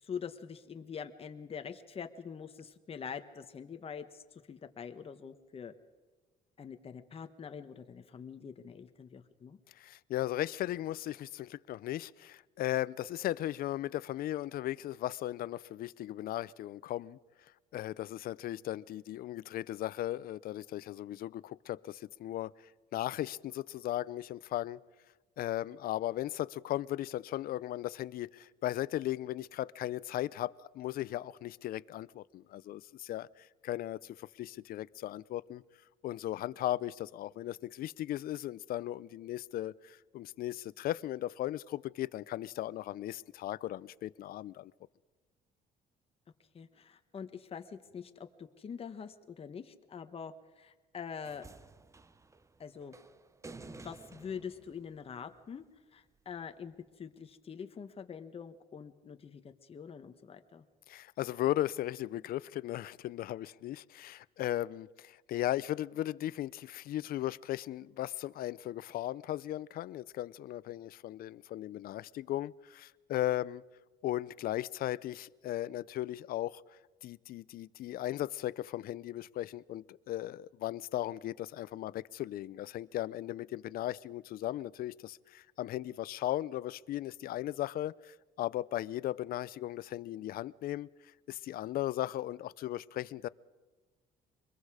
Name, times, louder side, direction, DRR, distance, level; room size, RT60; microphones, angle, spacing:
voice 1, 0.0-5.7 6.6-9.6 46.5-51.5 52.6-53.0 53.6-55.6 55.9-60.6, left 7 dB, 35° left, 1.3 m, -45 dB
voice 2, 9.7-17.2 17.7-22.5 22.9-24.8 25.4-35.6 36.0-44.7 60.9-73.6 74.0-90.9 91.3-93.3, left 14 dB, 60° left, 0.5 m, -37 dB
sound 1, 51.2-55.6 56.7-56.8, right 3 dB, 15° right, 0.8 m, -53 dB
24.5 x 21.5 x 4.9 m
cardioid pair, 110°, 17 cm